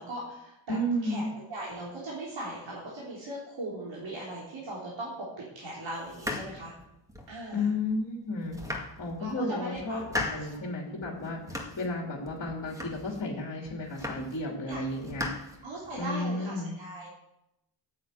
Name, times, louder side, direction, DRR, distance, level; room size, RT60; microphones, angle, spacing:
voice 1, 0.0-0.8 1.0-6.7 7.3-7.7 9.2-10.0 10.3-10.7 14.7-14.8 15.6-17.1, right 1 dB, 65° right, -6 dB, 4.1 m, -39 dB
voice 2, 0.7-1.3 7.5-8.6 9.0-15.3 16.0-16.7, left 1 dB, 40° left, 0 dB, 2.9 m, -33 dB
sound 1, 6.1-7.4 7.9-8.0 8.4-9.4 9.8-10.6 11.0-11.9 12.3-13.3 13.7-14.4 14.7-16.0, left 2 dB, 5° right, 2.0 m, -38 dB
9.6 x 8.8 x 8.1 m, 0.87 s
cardioid pair, 105°, 48 cm